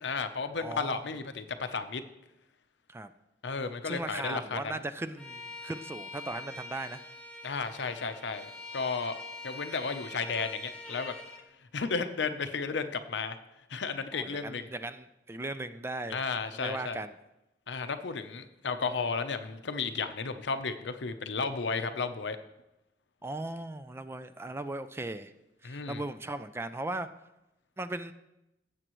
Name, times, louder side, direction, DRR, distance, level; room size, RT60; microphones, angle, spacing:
voice 1, 0.0-2.0 3.4-4.6 7.4-9.2 9.4-11.1 11.7-13.4 13.7-14.6 16.1-17.0 17.7-22.4 25.6-26.0, left 4 dB, 75° left, 9 dB, 0.7 m, -33 dB
voice 2, 0.6-1.1 2.9-3.1 3.8-7.0 14.1-16.2 16.5-17.1 23.2-25.3 25.6-27.1 27.8-28.1, right 2 dB, 15° right, 11 dB, 0.4 m, -38 dB
Bowed string instrument, 5.2-11.4, left 2 dB, 5° left, 1.1 m, -44 dB
17.5 x 7.8 x 3.1 m, 0.92 s
head